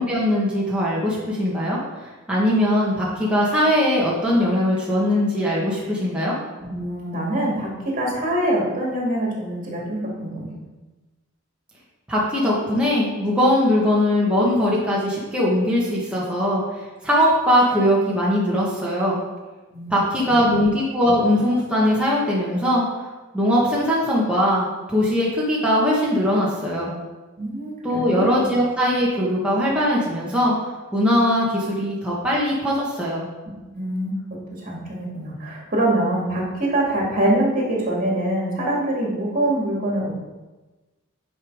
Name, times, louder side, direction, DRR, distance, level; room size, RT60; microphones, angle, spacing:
voice 1, 0.0-1.8 2.3-6.3 12.1-16.6 17.0-19.2 19.9-22.8 23.3-26.9 27.8-30.5 30.9-33.2, equal, 5° right, -6 dB, 1.5 m, -20 dB
voice 2, 6.6-10.5 19.7-19.9 20.3-20.4 27.4-28.4 33.7-34.1 34.6-40.1, right 1 dB, 40° right, -3 dB, 2.8 m, -24 dB
9.5 x 5.4 x 5.0 m, 1.2 s
head